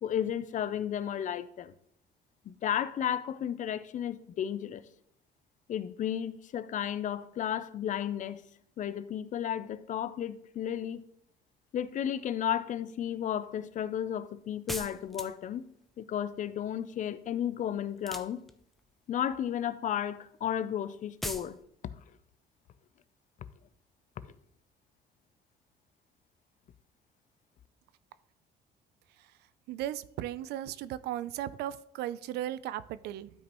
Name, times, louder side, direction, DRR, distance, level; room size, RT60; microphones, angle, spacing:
voice 1, 0.0-1.7 2.4-4.8 5.7-8.4 8.8-11.0 11.7-15.6 16.0-18.4 19.1-21.6 24.2-24.3, left 10 dB, 50° left, 0.5 m, -33 dB
sound 1, 14.7-15.6 18.0-18.8 21.2-21.5, equal, ahead, 0.5 m, -38 dB
voice 2, 29.7-33.3, right 12 dB, 80° right, 0.4 m, -36 dB
12.0 x 5.2 x 3.0 m
cardioid pair, 110°, 17 cm